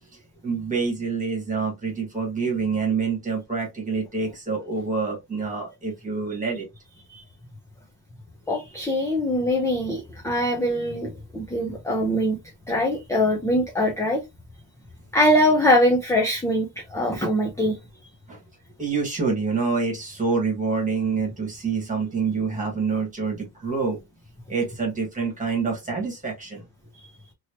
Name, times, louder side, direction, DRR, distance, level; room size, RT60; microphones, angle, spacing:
voice 1, 0.4-6.6 18.3-18.4 18.8-24.0 24.5-26.6, right 5 dB, 15° right, 1.4 m, -26 dB
voice 2, 8.5-12.4 12.7-14.2 15.1-17.8, left 1 dB, 5° left, 0.4 m, -22 dB
3.0 x 2.8 x 2.9 m
wide cardioid pair, 170°, 44 cm